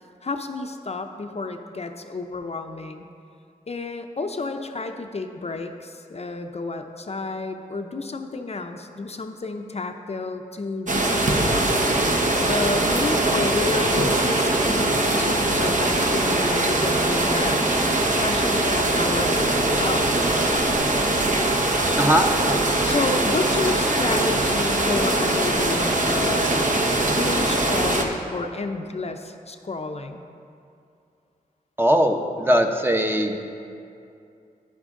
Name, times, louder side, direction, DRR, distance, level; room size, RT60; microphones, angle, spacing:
voice 1, 0.2-3.1 3.7-11.9 12.5-17.8 18.1-20.1 22.8-26.7 27.0-30.2, left 3 dB, 40° left, 5 dB, 0.6 m, -31 dB
sound 1, 10.9-28.0, right 2 dB, 55° right, 1.1 m, -22 dB
voice 2, 22.0-22.3 31.8-33.4, equal, 15° right, 4 dB, 0.9 m, -20 dB
9.9 x 9.1 x 3.7 m, 2.5 s
cardioid pair, 50°, 16 cm